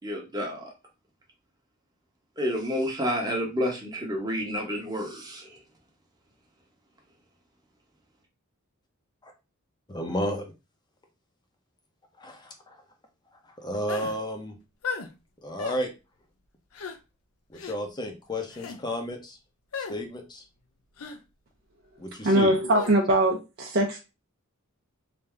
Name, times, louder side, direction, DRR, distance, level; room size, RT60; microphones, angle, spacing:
voice 1, 0.0-0.7 2.4-5.6, equal, 20° right, 0 dB, 1.0 m, -30 dB
voice 2, 9.9-10.5 12.2-12.8 13.6-14.6 15.4-15.9 17.5-19.4 19.9-20.4 22.0-22.5, equal, 20° left, 3 dB, 0.7 m, -32 dB
sound 1, 13.9-14.2 14.8-15.1 15.6-15.8 16.7-17.0 17.5-17.8 18.5-18.8 19.7-20.0 21.0-21.2 22.7-23.0, left 5 dB, 75° left, 0.6 m, -35 dB
voice 3, 22.2-24.0, right 1 dB, 50° right, -2 dB, 0.6 m, -22 dB
3.4 x 2.7 x 3.3 m, 0.28 s
head